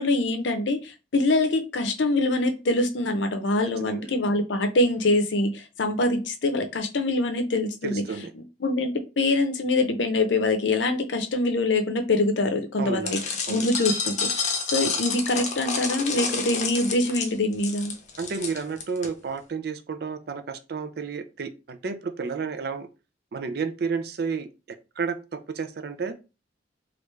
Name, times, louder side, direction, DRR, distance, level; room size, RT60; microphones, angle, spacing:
voice 1, 0.0-8.0 8.3-13.2 13.5-17.9, left 2 dB, 80° left, 6 dB, 0.6 m, -24 dB
voice 2, 7.8-8.3 12.8-13.2 13.5-13.7 18.2-22.9 23.3-24.5 25.0-26.2, right 5 dB, 60° right, 9 dB, 0.4 m, -31 dB
sound 1, 13.1-19.1, left 5 dB, 40° left, 0.6 m, -29 dB
3.3 x 2.5 x 3.1 m, 0.30 s
head